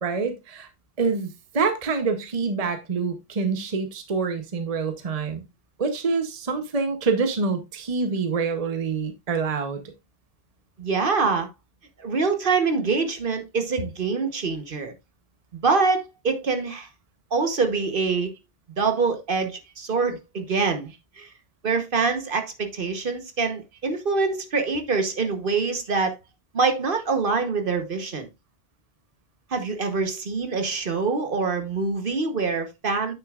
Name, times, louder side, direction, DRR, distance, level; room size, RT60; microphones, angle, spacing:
voice 1, 0.0-0.7 1.0-5.4 5.8-9.8, right 4 dB, 35° right, 0.9 m, -26 dB
voice 2, 10.8-11.5 12.0-14.9 15.5-16.9 17.3-18.3 18.8-21.3 21.6-26.1 26.5-28.3 29.5-33.1, right 4 dB, 55° right, 1.3 m, -25 dB
9.1 x 6.7 x 2.4 m
omnidirectional pair, 1.1 m